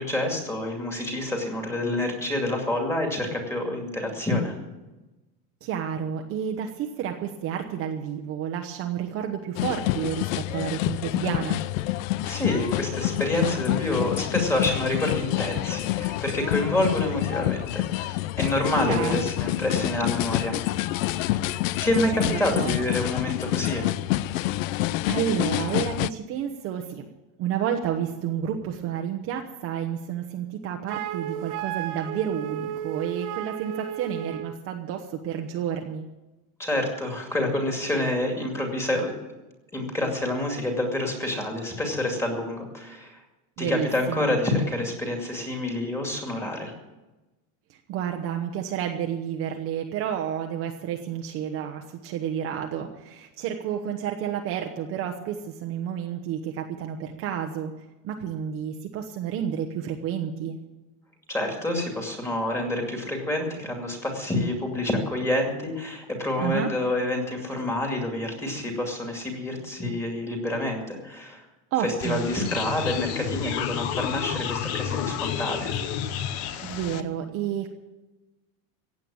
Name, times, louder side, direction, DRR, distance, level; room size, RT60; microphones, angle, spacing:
voice 1, 0.0-4.5 12.2-20.5 21.8-24.0 36.6-39.1 39.7-43.2 43.6-46.7 61.3-71.4 71.8-75.7, left 1 dB, 5° left, 2 dB, 2.4 m, -28 dB
voice 2, 5.6-11.6 18.9-19.3 22.2-22.7 25.1-27.0 27.4-36.0 43.6-44.3 47.7-57.7 58.0-60.6 66.4-66.7 71.7-72.3 76.6-77.7, right 9 dB, 35° right, 3 dB, 1.0 m, -30 dB
sound 1, 9.6-26.1, left 16 dB, 70° left, 0.6 m, -27 dB
Wind instrument woodwind instrument, 30.9-34.6, right 11 dB, 60° right, 1.3 m, -33 dB
sound 2, 72.0-77.0, left 9 dB, 35° left, 0.9 m, -30 dB
15.5 x 8.7 x 8.8 m, 1.1 s
cardioid pair, 175°, 40 cm